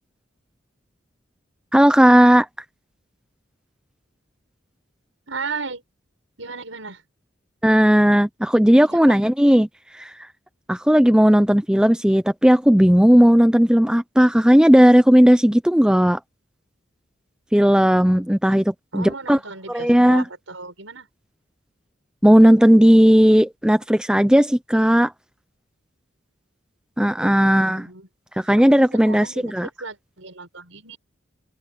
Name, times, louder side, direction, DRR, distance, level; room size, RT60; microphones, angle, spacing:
voice 1, 1.7-2.5 7.6-9.7 9.9-10.1 10.7-16.2 17.5-19.4 19.7-20.2 22.2-25.1 27.0-27.9 28.4-29.7, equal, 5° right, 0.6 m, -15 dB
voice 2, 5.3-5.8 6.4-7.0 8.8-9.2 18.9-21.1 27.4-28.1 28.7-29.5 29.8-31.0, right 4 dB, 90° right, 6.8 m, -35 dB
head